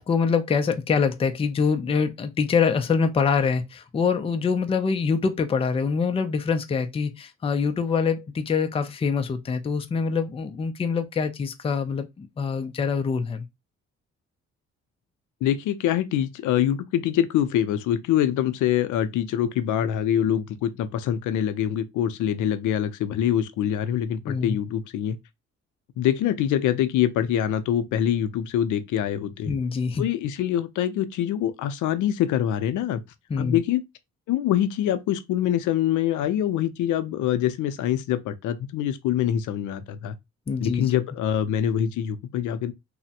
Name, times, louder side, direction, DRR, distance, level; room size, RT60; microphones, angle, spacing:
voice 1, 0.0-13.4 24.3-24.6 29.5-30.0 33.3-33.6 40.5-40.8, left 5 dB, 20° left, 0.4 m, -25 dB
voice 2, 15.4-25.2 26.0-29.5 30.0-33.0 33.4-33.8 34.3-40.1 40.6-42.7, left 10 dB, 80° left, 0.5 m, -24 dB
3.2 x 2.1 x 2.7 m
cardioid pair, 90°, 30 cm